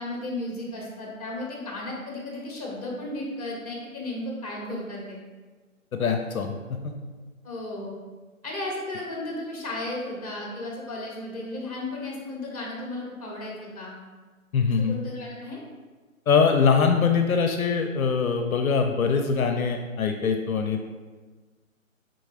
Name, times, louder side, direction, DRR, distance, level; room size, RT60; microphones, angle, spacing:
voice 1, 0.0-5.2 7.4-7.9 8.4-13.9 14.9-15.6, left 2 dB, 25° left, -3 dB, 0.9 m, -34 dB
voice 2, 6.0-6.5 6.8-6.9 14.5-15.0 16.3-20.9, left 5 dB, 75° left, 5 dB, 0.5 m, -23 dB
4.5 x 3.8 x 2.4 m, 1.4 s
figure-of-eight pair, 160°, 42 cm